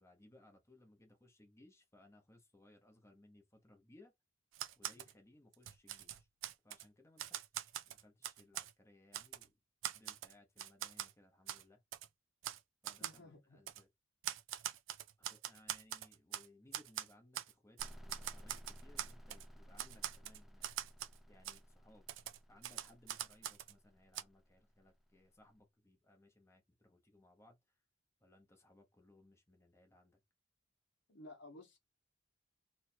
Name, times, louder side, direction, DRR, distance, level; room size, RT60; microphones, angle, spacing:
voice 1, 0.0-4.1 4.8-6.3 6.6-9.5 9.9-11.8 12.8-13.9 15.2-20.7 21.3-22.1 22.5-27.6 28.2-30.2, left 1 dB, 15° left, 0.8 m, -65 dB
Typewriter, 4.5-5.1 5.5-6.8 7.2-8.7 9.1-9.5 9.8-11.1 11.5-11.6 11.9-12.1 12.4-12.6 12.8-13.2 13.7-13.8 14.2-16.5 16.7-17.5 17.8-19.4 19.8-21.2 21.4-21.6 22.1-23.7 24.1-24.2, right 11 dB, 80° right, 0.4 m, -43 dB
voice 2, 13.0-13.6 31.1-31.8, left 1 dB, 65° left, 0.9 m, -55 dB
sound 1, 17.8-25.3, equal, ahead, 0.3 m, -57 dB
3.1 x 2.3 x 4.2 m
head